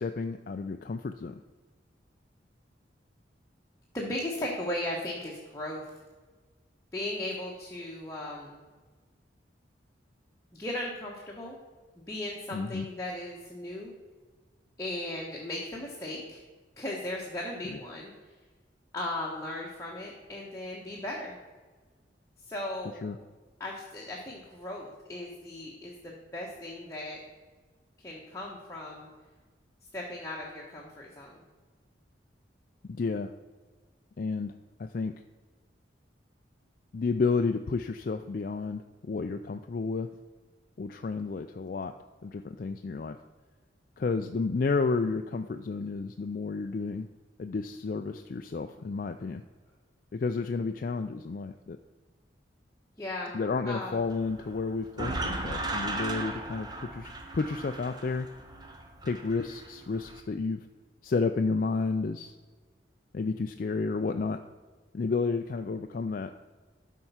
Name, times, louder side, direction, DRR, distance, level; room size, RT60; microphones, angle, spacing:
voice 1, 0.0-1.4 12.5-12.9 17.7-17.8 23.0-23.2 32.9-33.3 34.2-34.5 34.8-35.1 36.9-40.1 40.8-41.9 42.2-43.2 44.0-47.1 47.4-49.4 50.1-51.8 53.3-58.3 59.0-60.7 61.0-62.3 63.1-64.4 64.9-66.3, left 4 dB, 50° left, 6 dB, 0.4 m, -31 dB
voice 2, 3.9-5.9 6.9-8.6 10.5-11.6 12.0-13.9 14.8-16.4 16.8-18.1 18.9-21.4 22.5-23.1 23.6-27.2 28.0-29.1 29.9-31.4 53.0-53.4 53.6-54.0, left 1 dB, 15° left, -3 dB, 1.2 m, -37 dB
sound 1, 53.9-60.2, right 2 dB, 20° right, 0.8 m, -37 dB
12.5 x 4.6 x 5.6 m, 1.3 s
head